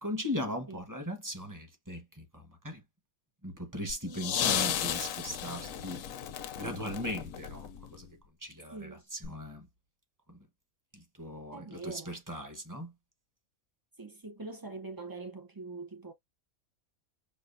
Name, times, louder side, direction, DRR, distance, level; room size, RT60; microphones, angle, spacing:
voice 1, 0.0-2.8 3.4-6.0 6.6-8.1 8.4-9.7 10.3-10.5 10.9-12.9, left 1 dB, 15° right, 1.1 m, -39 dB
sound 1, 3.9-8.1 9.2-9.3, left 9 dB, 70° left, 1.0 m, -34 dB
voice 2, 4.0-4.6 8.7-9.1 11.5-12.2 14.0-16.1, right 3 dB, 35° right, 0.3 m, -44 dB
5.4 x 2.4 x 2.5 m
omnidirectional pair, 1.5 m